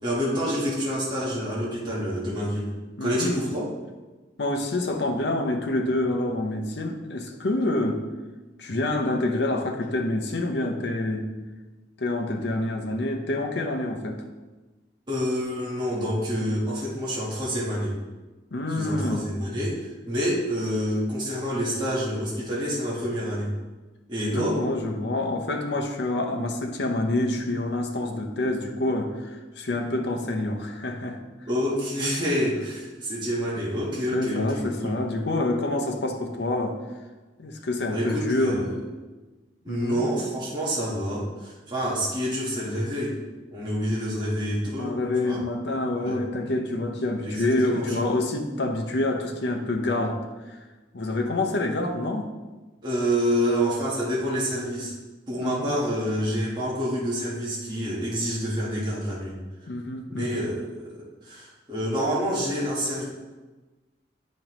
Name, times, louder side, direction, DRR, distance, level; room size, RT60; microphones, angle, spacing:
voice 1, 0.0-2.7 3.0-3.6 15.1-17.9 18.7-23.5 24.1-24.6 31.5-34.9 37.9-38.7 39.6-43.2 43.5-45.0 45.2-45.4 46.0-46.2 47.2-48.0 52.8-54.9 55.3-59.3 60.1-63.0, equal, 25° right, -7 dB, 1.4 m, -27 dB
voice 2, 3.0-3.4 4.4-8.0 8.6-11.3 12.0-14.2 18.5-19.2 24.3-31.2 34.1-36.8 37.4-38.8 39.7-40.0 44.7-50.2 50.5-50.6 50.9-52.3 55.4-55.7 59.7-60.5, left 2 dB, 70° left, 2 dB, 0.7 m, -27 dB
9.2 x 5.2 x 3.0 m, 1.2 s
head